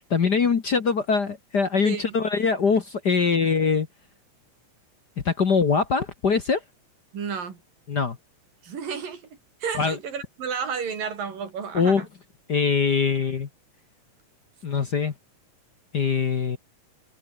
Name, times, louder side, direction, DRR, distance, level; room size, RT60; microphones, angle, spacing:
voice 1, 0.1-3.9 5.2-6.6 7.9-8.2 9.8-10.0 11.7-12.0 12.5-13.5 14.6-15.1 15.9-16.6, left 5 dB, 45° left, 1.4 m, -22 dB
voice 2, 1.8-2.2 7.1-7.6 8.6-9.3 9.6-12.1, right 6 dB, 90° right, 5.7 m, -32 dB
omnidirectional pair, 3.8 m